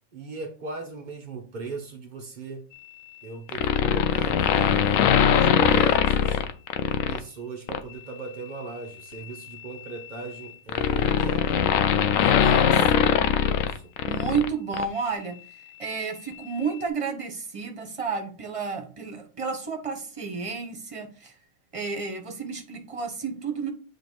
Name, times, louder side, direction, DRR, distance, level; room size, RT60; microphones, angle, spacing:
voice 1, 0.1-2.6 3.2-6.4 6.9-11.6 12.1-13.9, right 3 dB, 80° right, 0.4 m, -38 dB
sound 1, 3.5-7.2 7.7-7.9 9.1-14.5 14.7-14.8, left 8 dB, 70° left, 0.7 m, -22 dB
voice 2, 12.3-12.7 13.0-13.2 14.1-21.3 21.7-23.7, right 5 dB, 25° right, 0.9 m, -31 dB
8.0 x 2.9 x 4.5 m
omnidirectional pair, 1.9 m